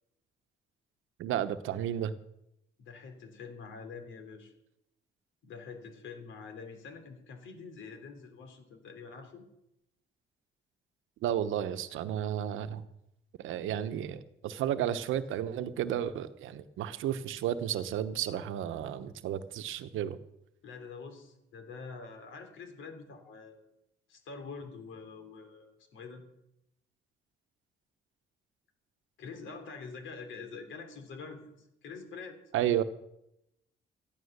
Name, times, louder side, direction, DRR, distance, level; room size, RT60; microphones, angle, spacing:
voice 1, 1.2-2.1 11.2-12.8 13.4-20.2 32.5-32.8, right 10 dB, 85° right, 11 dB, 1.0 m, -32 dB
voice 2, 2.8-4.5 5.4-9.5 20.6-23.7 24.1-26.2 29.2-32.4, left 5 dB, 75° left, 6 dB, 3.1 m, -46 dB
14.0 x 11.5 x 6.6 m, 0.83 s
cardioid pair, 90°, 20 cm